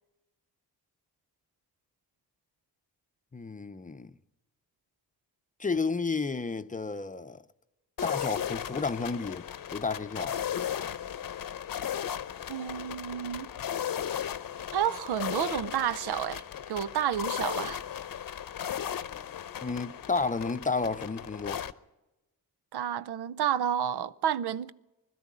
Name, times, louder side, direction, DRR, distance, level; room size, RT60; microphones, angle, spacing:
voice 1, 3.3-4.1 5.6-7.4 8.0-10.3 19.6-21.6, left 4 dB, 20° left, 0.6 m, -32 dB
sound 1, 8.0-21.7, left 9 dB, 60° left, 0.8 m, -36 dB
voice 2, 12.5-13.5 14.7-16.4 16.7-17.8 22.7-24.7, right 9 dB, 85° right, 0.7 m, -30 dB
21.0 x 13.0 x 9.8 m
cardioid pair, 90°, 38 cm